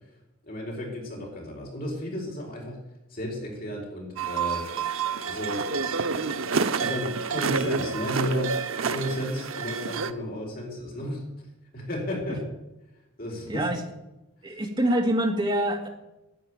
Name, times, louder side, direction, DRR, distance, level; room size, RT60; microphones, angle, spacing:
voice 1, 0.4-2.8 3.1-4.7 5.2-11.2 11.7-12.4 13.2-13.7 14.4-14.6, left 1 dB, 45° left, -1 dB, 4.6 m, -33 dB
sound 1, 4.2-10.1, right 5 dB, 80° right, 0.8 m, -28 dB
voice 2, 14.4-15.9, right 1 dB, 20° right, 1 dB, 2.2 m, -25 dB
11.0 x 9.2 x 9.1 m, 0.94 s
head